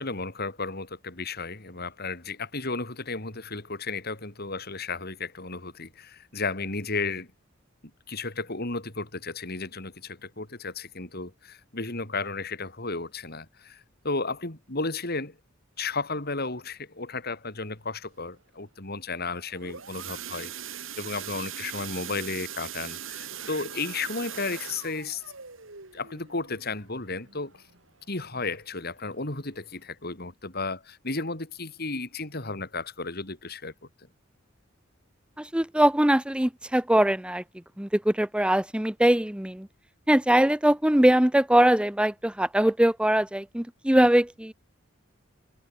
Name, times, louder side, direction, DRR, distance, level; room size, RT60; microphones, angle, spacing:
voice 1, 0.0-7.3 8.1-15.4 15.8-20.5 21.0-25.2 25.9-27.6 28.1-33.7 44.0-44.1, left 3 dB, 50° left, 3.9 m, -33 dB
sound 1, 19.3-28.0 28.4-28.7 29.0-29.1 29.6-29.7, right 9 dB, 75° right, 3.8 m, -40 dB
voice 2, 35.4-37.4 37.8-39.7 40.1-44.5, right 1 dB, 5° right, 0.7 m, -22 dB
head